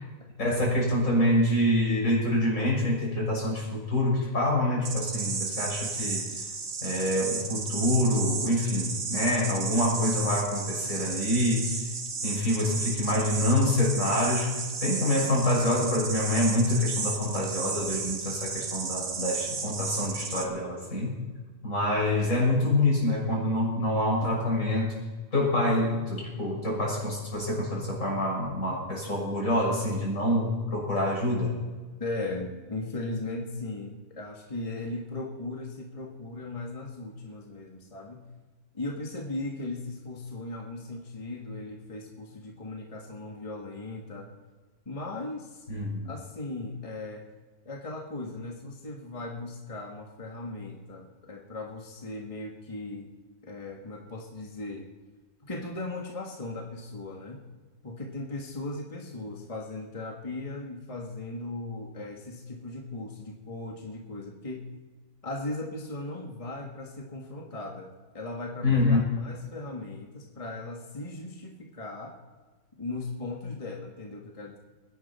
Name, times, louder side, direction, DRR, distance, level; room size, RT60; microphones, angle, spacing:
voice 1, 0.4-6.3 6.8-11.9 12.2-14.5 14.8-21.2 21.6-24.9 25.3-31.5 45.7-46.1 68.6-69.0, left 1 dB, 75° left, -4 dB, 6.6 m, -26 dB
sound 1, 4.8-20.5, right 4 dB, 65° right, 1.7 m, -33 dB
voice 2, 32.0-38.3 38.7-44.3 44.9-45.7 46.0-47.3 47.7-53.1 53.4-54.9 55.5-57.5 57.8-64.7 65.2-72.2 72.8-74.6, left 2 dB, 25° left, 0 dB, 1.7 m, -38 dB
22.0 x 10.5 x 4.3 m, 1.3 s
omnidirectional pair, 1.4 m